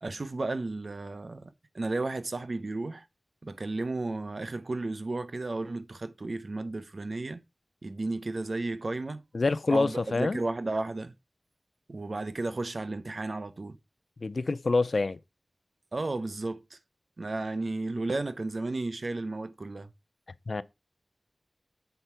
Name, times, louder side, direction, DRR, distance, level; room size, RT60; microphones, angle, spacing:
voice 1, 0.0-3.0 3.4-7.4 7.8-9.2 9.7-11.1 11.9-13.8 15.9-16.8 17.2-19.9, right 2 dB, 70° right, 0.8 m, -33 dB
voice 2, 9.3-10.4 14.2-15.2 20.5-20.6, left 3 dB, 85° left, 0.5 m, -26 dB
7.9 x 4.5 x 5.5 m
wide cardioid pair, 60°, 0 cm